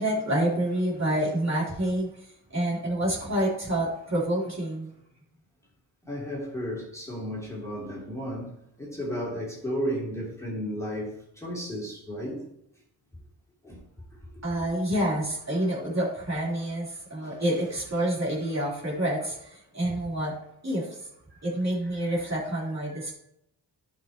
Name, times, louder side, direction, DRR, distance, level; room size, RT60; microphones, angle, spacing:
voice 1, 0.0-2.1 2.5-4.9 14.4-20.3 20.6-21.1 21.4-23.1, right 1 dB, 35° right, 3.7 m, -28 dB
voice 2, 6.0-12.5 13.6-14.4 17.2-17.4 21.3-21.5 21.8-22.3 22.8-23.1, equal, 5° left, 3.2 m, -34 dB
11.5 x 5.9 x 3.0 m
cardioid pair, 75°, 43 cm